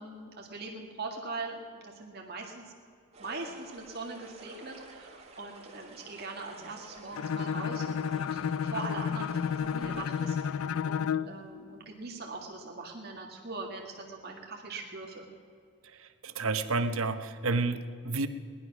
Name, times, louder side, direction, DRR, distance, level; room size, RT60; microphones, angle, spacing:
voice 1, 0.0-2.6 3.2-15.2, right 3 dB, 45° right, 0 dB, 1.8 m, -41 dB
sound 1, 3.1-10.5, right 2 dB, 30° right, 2.5 m, -51 dB
Bowed string instrument, 7.1-11.4, left 7 dB, 75° left, 0.4 m, -31 dB
voice 2, 16.2-18.3, right 3 dB, 75° right, 10 dB, 0.9 m, -30 dB
19.0 x 11.5 x 6.0 m, 2.2 s
head